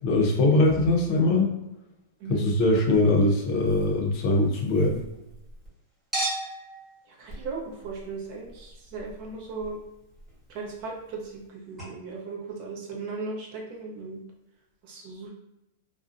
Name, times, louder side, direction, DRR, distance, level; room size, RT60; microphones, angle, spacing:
voice 1, 0.0-1.5 2.3-5.0, left 2 dB, 40° left, 0 dB, 0.6 m, -22 dB
Chink clink, 2.7-5.7 6.1-11.5 11.8-11.9, right 1 dB, 10° right, 1.1 m, -39 dB
voice 2, 7.1-9.8 10.5-14.2 14.8-15.3, right 4 dB, 45° right, -1 dB, 0.6 m, -37 dB
2.5 x 2.0 x 2.5 m, 0.93 s
supercardioid pair, 155°, 0 cm